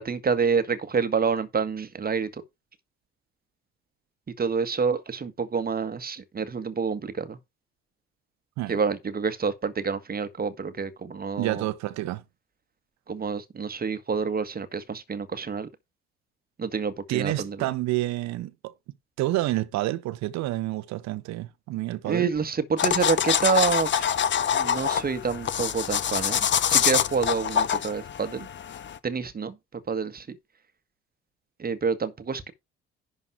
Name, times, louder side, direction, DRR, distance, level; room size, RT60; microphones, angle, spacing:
voice 1, 0.0-2.3 4.4-7.4 8.7-11.7 13.1-15.7 16.6-17.6 22.0-24.2 24.5-28.5 29.0-29.5 29.9-30.4 31.6-32.5, right 5 dB, 30° right, 1.6 m, -28 dB
voice 2, 11.4-12.2 17.1-18.7 19.2-22.3, right 17 dB, 55° right, 1.2 m, -29 dB
sound 1, 22.8-29.0, left 8 dB, 35° left, 0.8 m, -25 dB
11.0 x 4.1 x 6.0 m
figure-of-eight pair, 55°, 32 cm